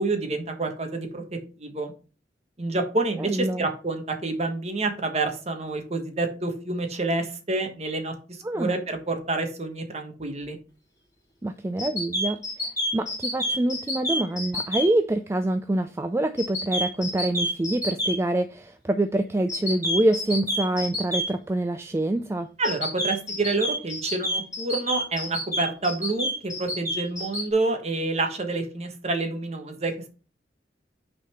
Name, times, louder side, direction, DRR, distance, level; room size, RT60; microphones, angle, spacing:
voice 1, 0.0-1.9 2.6-10.6 22.6-30.1, right 2 dB, 40° right, 1.3 m, -28 dB
voice 2, 3.3-3.7 8.4-8.8 11.4-22.5, right 1 dB, 15° right, 0.3 m, -26 dB
sound 1, 11.8-14.9 16.4-18.2 19.5-21.3 22.6-27.4, equal, 20° left, 2.7 m, -28 dB
6.0 x 4.1 x 5.7 m
head